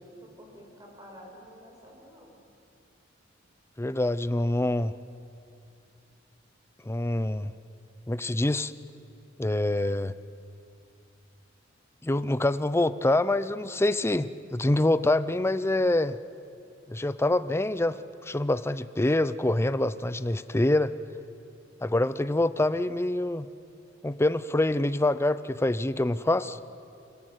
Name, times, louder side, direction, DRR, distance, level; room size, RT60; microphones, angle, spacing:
voice 1, 0.0-2.4, equal, 20° right, -1 dB, 5.5 m, -50 dB
voice 2, 3.8-4.9 6.9-7.5 8.1-8.7 9.4-10.1 12.0-16.2 16.9-20.9 21.8-23.5 24.0-26.6, left 1 dB, 15° left, 14 dB, 0.6 m, -25 dB
29.5 x 16.0 x 8.2 m, 2.5 s
head